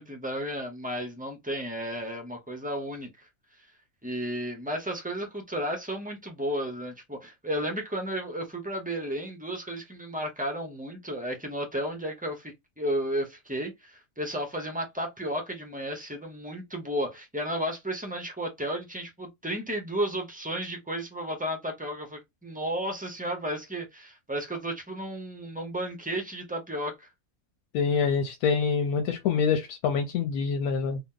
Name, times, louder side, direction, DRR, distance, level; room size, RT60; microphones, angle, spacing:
voice 1, 0.0-3.3 4.0-27.1, equal, 10° right, 0.4 m, -33 dB
voice 2, 27.7-31.0, left 5 dB, 90° left, 1.0 m, -26 dB
2.8 x 2.2 x 3.6 m
omnidirectional pair, 1.5 m